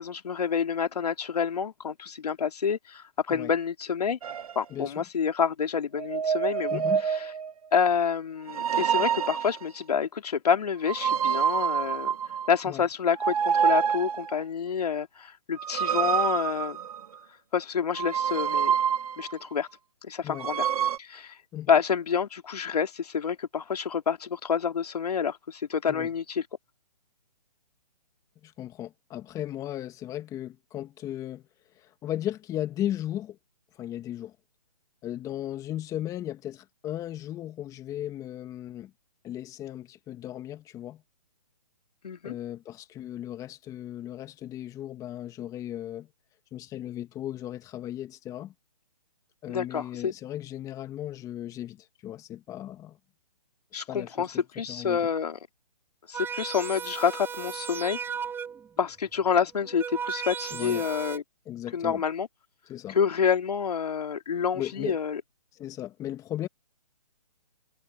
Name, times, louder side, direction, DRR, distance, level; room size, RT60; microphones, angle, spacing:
voice 1, 0.0-4.2 4.5-6.8 7.1-7.2 7.7-12.2 12.5-16.8 17.5-18.7 19.2-19.7 20.0-20.7 21.0-21.4 21.7-26.4 42.0-42.3 49.5-50.1 53.7-55.4 56.1-58.0 58.8-61.2 61.7-62.3 62.9-65.2, left 7 dB, 70° left, 3.0 m, -28 dB
sound 1, 4.2-4.5 6.0-7.5 8.5-9.6 10.9-12.6 13.2-14.4 15.6-17.2 18.0-19.3 20.3-21.0, right 8 dB, 60° right, 1.4 m, -27 dB
voice 2, 4.7-5.0 6.7-7.0 12.6-12.8 20.2-20.5 21.5-21.7 25.9-26.1 28.4-31.4 31.8-33.4 33.8-34.3 35.0-38.9 39.2-41.0 42.2-46.1 46.5-48.5 49.4-53.0 53.9-54.3 54.7-55.0 60.5-60.8 61.5-62.0 62.7-63.0 64.5-65.0 65.5-66.5, left 12 dB, 15° left, 2.4 m, -36 dB
sound 2, 56.1-58.8 59.5-61.2, right 7 dB, 10° right, 5.9 m, -36 dB
hypercardioid pair, 145°, 21 cm